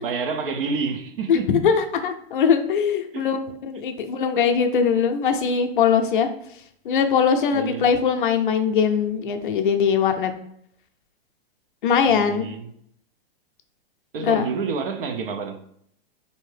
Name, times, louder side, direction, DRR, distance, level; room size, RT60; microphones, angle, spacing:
voice 1, 0.0-1.5 3.1-3.3 7.5-7.9 12.1-12.7 14.1-15.6, right 5 dB, 60° right, 0.6 m, -28 dB
voice 2, 1.3-3.4 3.7-6.3 6.9-10.3 11.8-12.5 14.2-14.4, left 7 dB, 55° left, 0.5 m, -21 dB
4.3 x 2.7 x 3.2 m
hypercardioid pair, 175°, 32 cm